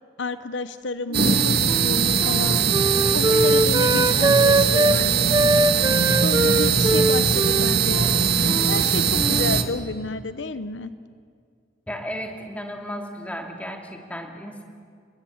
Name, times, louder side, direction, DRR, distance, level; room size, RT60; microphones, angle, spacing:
voice 1, 0.2-2.6 3.1-5.8 6.2-10.9, left 3 dB, 75° left, 13 dB, 0.9 m, -31 dB
Wind instrument woodwind instrument, 1.1-5.0 5.3-8.9 9.1-9.7, right 2 dB, 20° right, 0.8 m, -23 dB
sound 1, 1.1-9.6, right 6 dB, 60° right, 1.9 m, -21 dB
voice 2, 11.9-14.6, equal, 5° left, 3 dB, 2.8 m, -34 dB
30.0 x 21.0 x 8.6 m, 2.1 s
head